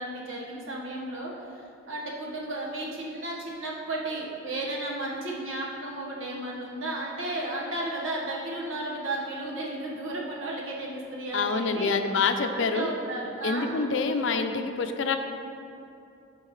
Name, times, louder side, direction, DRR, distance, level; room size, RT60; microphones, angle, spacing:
voice 1, 0.0-11.9 12.5-13.9, right 2 dB, 85° right, -3 dB, 1.4 m, -34 dB
voice 2, 11.3-12.9 13.4-15.2, left 4 dB, 70° left, 7 dB, 0.5 m, -26 dB
12.0 x 4.5 x 3.2 m, 2.7 s
head